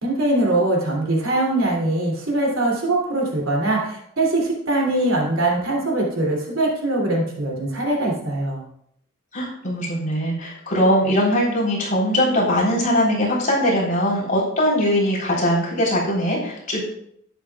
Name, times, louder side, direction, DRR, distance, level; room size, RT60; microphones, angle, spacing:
voice 1, 0.0-8.6, right 2 dB, 70° right, -2 dB, 3.0 m, -22 dB
voice 2, 9.3-16.8, equal, 40° left, -5 dB, 3.9 m, -21 dB
11.0 x 9.6 x 2.4 m, 0.70 s
head